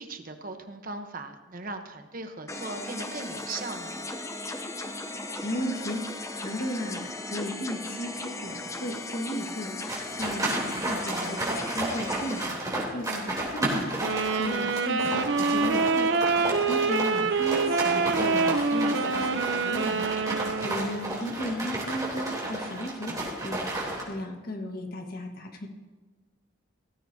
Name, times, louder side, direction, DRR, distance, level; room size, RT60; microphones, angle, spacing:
voice 1, 0.0-4.0, right 3 dB, 45° right, 6 dB, 1.0 m, -38 dB
sound 1, 2.5-12.5, left 2 dB, 15° left, 0.7 m, -37 dB
voice 2, 5.4-7.0 7.3-25.7, equal, 50° left, 3 dB, 1.6 m, -35 dB
sound 2, 9.9-24.0, right 1 dB, 20° right, 3.4 m, -32 dB
Wind instrument woodwind instrument, 14.0-21.2, right 4 dB, 60° right, 0.7 m, -26 dB
17.5 x 14.5 x 2.8 m, 1.3 s
head